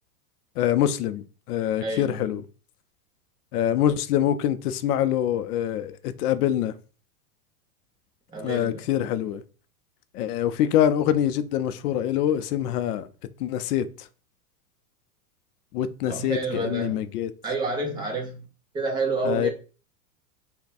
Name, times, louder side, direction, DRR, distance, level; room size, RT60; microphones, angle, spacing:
voice 1, 0.6-2.4 3.5-6.7 8.4-9.4 10.1-13.1 13.4-13.9 15.7-17.3 19.2-19.5, left 10 dB, 75° left, 0.6 m, -25 dB
voice 2, 1.8-2.2 8.3-8.8 16.0-17.0 17.4-18.4 18.7-19.5, right 3 dB, 10° right, 0.6 m, -29 dB
3.4 x 2.2 x 4.0 m
supercardioid pair, 150°, 46 cm